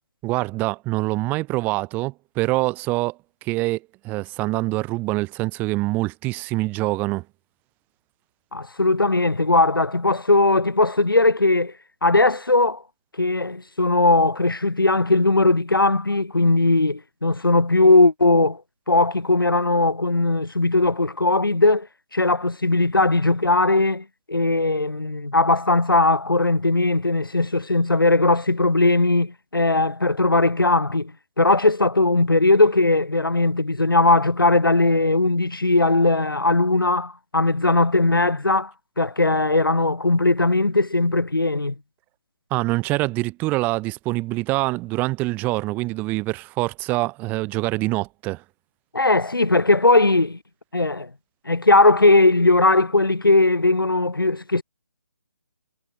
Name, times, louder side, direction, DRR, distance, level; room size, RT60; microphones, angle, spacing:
voice 1, 0.2-7.2 42.5-48.4, right 21 dB, 15° right, 1.9 m, -25 dB
voice 2, 8.5-11.7 12.0-12.8 13.2-18.6 18.9-21.9 22.1-31.1 31.4-41.7 48.9-50.4 50.7-51.1 51.4-54.6, left 2 dB, 80° left, 1.6 m, -19 dB
figure-of-eight pair, 145°, 11 cm